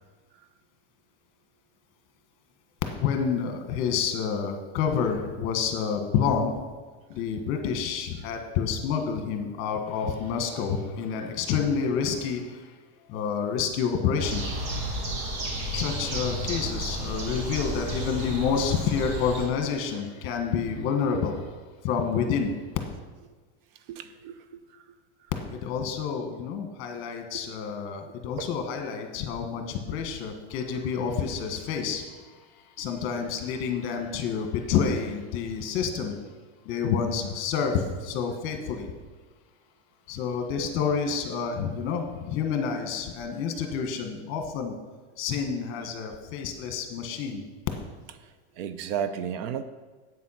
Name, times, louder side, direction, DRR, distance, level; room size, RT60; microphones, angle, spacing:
voice 1, 3.0-6.7 7.1-14.5 15.7-21.6 21.8-22.6 25.5-32.4 32.8-36.2 36.6-38.9 40.1-44.8 45.2-47.4, left 6 dB, 40° left, 5 dB, 1.4 m, -28 dB
sound 1, 14.2-19.5, right 1 dB, 35° right, 2.1 m, -32 dB
voice 2, 23.9-24.3 28.4-28.5 48.6-49.6, right 8 dB, 60° right, 12 dB, 0.7 m, -32 dB
8.3 x 7.5 x 5.8 m, 1.3 s
supercardioid pair, 165°, 32 cm